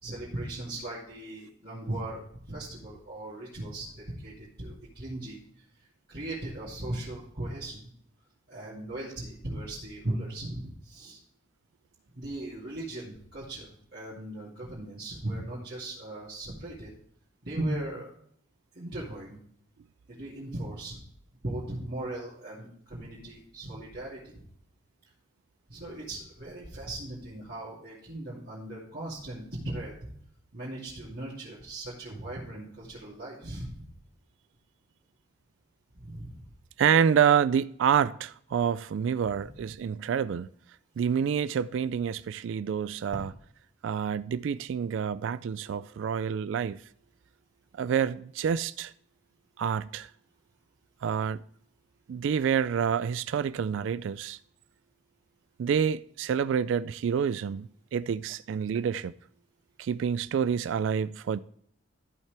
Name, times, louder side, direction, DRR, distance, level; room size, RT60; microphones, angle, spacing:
voice 1, 0.0-2.2 2.5-5.6 6.1-7.8 8.5-11.2 12.1-16.9 17.4-18.1 18.7-19.4 20.1-21.0 21.4-24.4 25.7-30.1 30.5-33.9 35.9-36.4 39.4-39.5, right 1 dB, 50° right, 2.6 m, -38 dB
voice 2, 36.8-40.5 41.0-43.3 43.8-46.8 47.7-48.9 49.6-50.1 51.0-51.4 52.1-54.4 55.6-59.1 59.8-61.4, right 7 dB, 70° right, 0.3 m, -27 dB
14.0 x 5.7 x 3.4 m
head